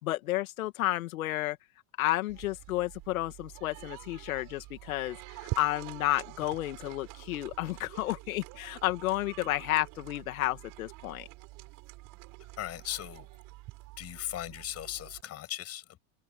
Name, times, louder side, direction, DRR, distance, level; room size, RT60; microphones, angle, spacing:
voice 1, 0.0-1.6 2.0-11.3, left 17 dB, 75° left, 2.2 m, -31 dB
sound 1, 2.3-15.2, right 21 dB, 50° right, 4.9 m, -46 dB
voice 2, 12.6-13.3 14.0-16.0, left 12 dB, 35° left, 7.6 m, -38 dB
supercardioid pair, 120°, 42 cm